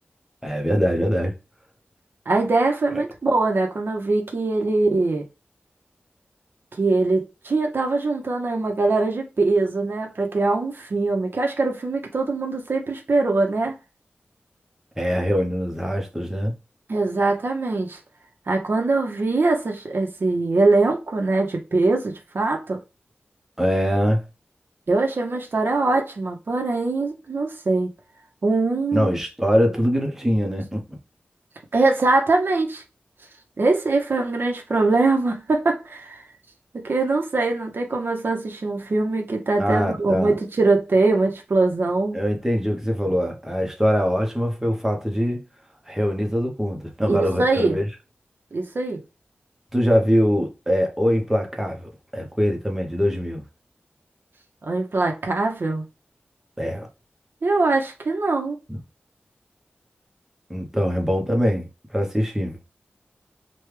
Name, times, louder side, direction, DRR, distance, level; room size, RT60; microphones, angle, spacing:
voice 1, 0.4-1.3 2.9-3.0 15.0-16.5 23.6-24.2 28.9-30.8 39.6-40.3 42.1-45.4 45.9-47.8 49.7-53.4 56.6-56.9 58.7-58.8 60.5-62.6, equal, 10° right, 0.9 m, -23 dB
voice 2, 2.3-5.2 6.8-13.8 16.9-18.0 18.5-22.8 24.9-27.9 28.4-29.1 31.7-32.8 33.6-36.2 36.7-42.2 47.1-47.8 48.5-49.0 54.6-55.8 57.4-58.6, right 3 dB, 65° right, 0.8 m, -22 dB
3.3 x 2.3 x 3.2 m
wide cardioid pair, 75°, 4 cm